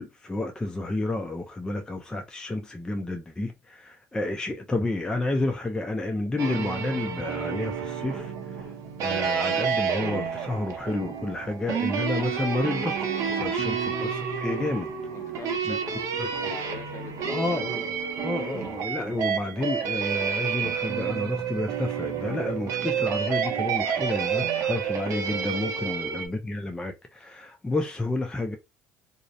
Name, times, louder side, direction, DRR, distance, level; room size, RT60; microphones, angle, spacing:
voice 1, 0.0-8.3 9.0-14.9 15.7-15.8 16.5-16.6 17.3-28.6, left 2 dB, 10° left, 0.4 m, -30 dB
sound 1, 6.4-26.3, right 7 dB, 55° right, 0.6 m, -29 dB
voice 2, 15.1-17.6 25.8-26.0, left 4 dB, 45° left, 0.7 m, -43 dB
2.4 x 2.0 x 2.6 m
supercardioid pair, 95°, 6 cm